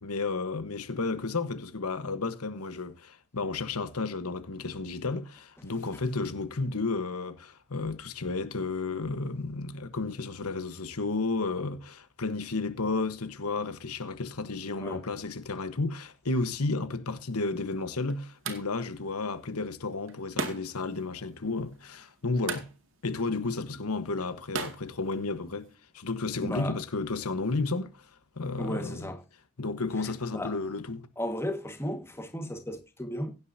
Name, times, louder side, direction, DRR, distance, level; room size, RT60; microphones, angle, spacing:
voice 1, 0.0-22.7 23.0-28.1 28.4-29.1 29.6-31.1, left 3 dB, 80° left, 1.2 m, -32 dB
sound 1, 17.2-25.7, right 5 dB, 60° right, 2.2 m, -41 dB
voice 2, 26.4-26.8 28.6-29.2 30.3-30.5 31.2-33.4, equal, 10° left, 1.6 m, -34 dB
16.5 x 9.3 x 2.7 m
head